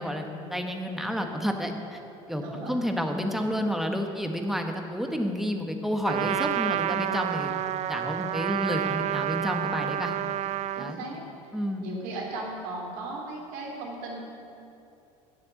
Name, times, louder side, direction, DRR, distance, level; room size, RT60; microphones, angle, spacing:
voice 1, 0.0-2.0 2.3-7.5 7.9-10.1 10.8-11.1 11.5-11.8, equal, ahead, 3 dB, 1.4 m, -30 dB
voice 2, 2.3-2.8 10.7-11.2 11.8-14.2, right 2 dB, 70° right, -2 dB, 3.1 m, -36 dB
Trumpet, 6.0-11.0, right 11 dB, 45° right, 0.4 m, -29 dB
9.7 x 8.0 x 7.8 m, 2.7 s
hypercardioid pair, 75°, 17 cm